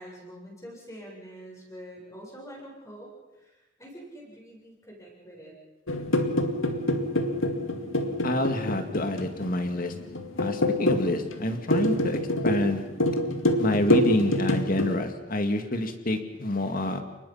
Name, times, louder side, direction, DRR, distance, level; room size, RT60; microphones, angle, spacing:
voice 1, 0.0-3.1 3.4-5.5, equal, 15° left, -2 dB, 7.3 m, -45 dB
sound 1, 5.9-14.9, left 1 dB, 85° left, 2.2 m, -26 dB
voice 2, 8.2-9.9 10.4-12.8 13.6-17.0, left 1 dB, 45° left, 6 dB, 2.1 m, -27 dB
30.0 x 20.0 x 5.8 m, 1.0 s
head